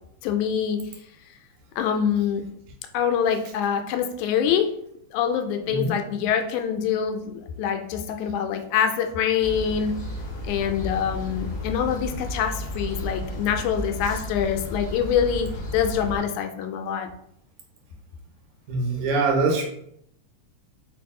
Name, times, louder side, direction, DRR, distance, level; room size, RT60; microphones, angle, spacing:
voice 1, 0.2-0.8 1.8-2.4 2.9-4.7 5.1-9.9 10.5-17.1, left 8 dB, 85° left, 6 dB, 2.0 m, -25 dB
sound 1, 9.4-16.2, left 1 dB, 45° left, 1.0 m, -33 dB
voice 2, 18.7-19.6, right 3 dB, 75° right, 1 dB, 2.1 m, -23 dB
4.7 x 2.5 x 3.6 m, 0.72 s
omnidirectional pair, 3.4 m